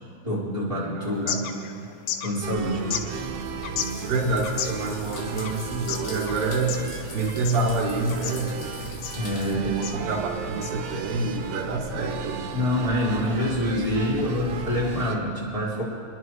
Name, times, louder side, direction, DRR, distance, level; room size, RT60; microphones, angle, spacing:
voice 1, 0.2-1.5 2.2-2.8 9.1-9.7 12.5-15.8, left 1 dB, 5° right, -10 dB, 3.8 m, -26 dB
voice 2, 0.9-1.8 2.6-3.2 3.8-6.8 7.1-8.8 9.3-12.5 13.9-15.1, right 3 dB, 60° right, -4 dB, 3.3 m, -29 dB
sound 1, 1.0-11.3, left 9 dB, 90° left, 3.1 m, -36 dB
sound 2, 2.4-15.2, right 5 dB, 85° right, 3.2 m, -35 dB
sound 3, 3.8-9.6, left 4 dB, 75° left, 1.5 m, -43 dB
25.5 x 11.0 x 3.2 m, 2.3 s
omnidirectional pair, 5.1 m